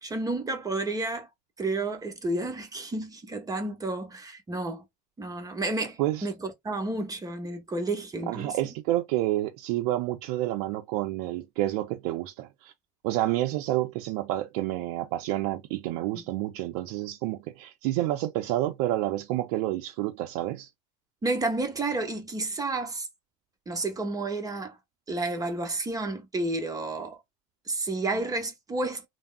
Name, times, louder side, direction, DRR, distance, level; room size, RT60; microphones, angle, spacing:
voice 1, 0.0-1.3 1.6-4.8 5.2-8.7 16.1-16.2 21.2-23.1 23.7-24.8 25.1-27.2 27.7-29.1, right 2 dB, 20° right, 0.8 m, -31 dB
voice 2, 8.3-12.7 13.0-20.7, right 15 dB, 75° right, 0.5 m, -29 dB
3.4 x 2.0 x 2.3 m
supercardioid pair, 100°, 19 cm